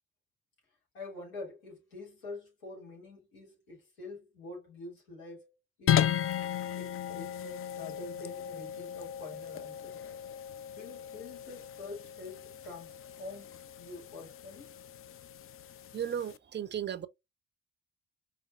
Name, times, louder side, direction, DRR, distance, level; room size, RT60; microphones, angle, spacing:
voice 1, 0.9-5.5 5.8-6.1 6.8-10.0 10.7-14.7, left 2 dB, 75° left, 2.4 m, -46 dB
sound 1, 5.9-16.4, left 10 dB, 35° left, 0.4 m, -35 dB
voice 2, 15.9-17.1, right 9 dB, 25° right, 0.6 m, -35 dB
5.1 x 3.5 x 2.4 m
figure-of-eight pair, 45°, 42 cm